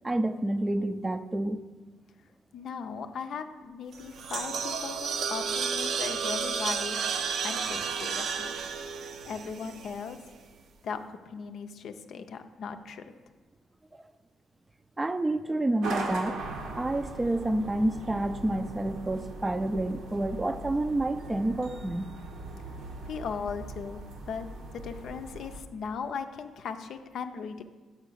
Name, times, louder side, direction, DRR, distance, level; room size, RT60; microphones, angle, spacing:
voice 1, 0.0-1.6 15.0-16.4 16.8-22.1, right 1 dB, 15° right, 11 dB, 0.4 m, -29 dB
voice 2, 2.5-7.0 7.4-8.5 9.2-10.2 10.8-13.0 23.1-24.0 24.3-24.5 24.7-27.6, left 6 dB, 65° left, 7 dB, 0.5 m, -38 dB
sound 1, 3.9-10.2, right 6 dB, 65° right, 0.6 m, -32 dB
sound 2, 15.8-25.6, right 2 dB, 85° right, 1.0 m, -40 dB
5.7 x 5.6 x 6.2 m, 1.3 s
cardioid pair, 90°, 0 cm